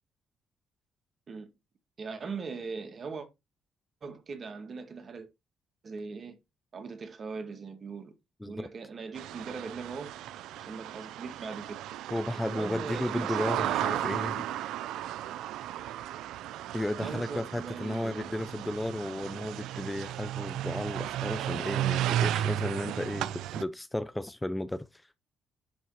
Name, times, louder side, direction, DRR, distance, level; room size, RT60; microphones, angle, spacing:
voice 1, 2.0-3.3 4.0-5.3 5.8-6.4 6.7-8.1 8.5-10.1 10.6-11.8 12.5-14.3 17.0-18.7, right 4 dB, 45° right, 2.0 m, -40 dB
voice 2, 8.4-8.7 12.1-14.5 16.7-25.2, left 1 dB, 10° left, 0.5 m, -34 dB
sound 1, 9.1-23.6, right 12 dB, 90° right, 0.5 m, -34 dB
10.5 x 3.8 x 4.7 m
cardioid pair, 90°, 0 cm